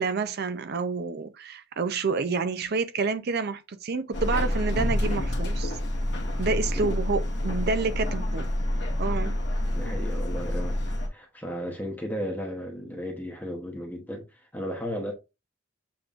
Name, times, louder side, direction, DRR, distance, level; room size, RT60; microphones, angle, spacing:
voice 1, 0.0-5.8 6.4-8.5 9.0-9.4, right 4 dB, 50° right, 0.5 m, -29 dB
Subway metro underground, 4.1-11.1, left 1 dB, 55° left, 1.2 m, -28 dB
voice 2, 6.5-6.8 9.7-10.8 11.1-15.1, equal, 10° left, 0.9 m, -35 dB
7.1 x 3.0 x 2.4 m
head